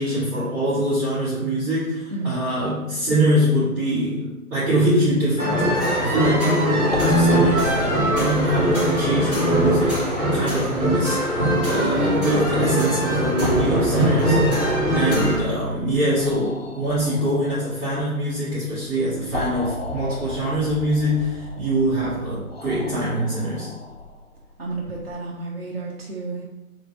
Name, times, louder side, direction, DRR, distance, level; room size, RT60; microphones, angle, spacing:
voice 1, 0.0-10.0 10.3-23.7, right 1 dB, 10° right, -17 dB, 1.4 m, -24 dB
sound 1, 5.4-15.4, equal, 10° left, 1.0 m, -21 dB
sound 2, 6.9-25.0, left 2 dB, 45° left, 0.4 m, -35 dB
voice 2, 24.6-26.4, right 3 dB, 45° right, -4 dB, 0.7 m, -31 dB
3.5 x 3.3 x 4.7 m, 0.96 s
figure-of-eight pair, 145°, 44 cm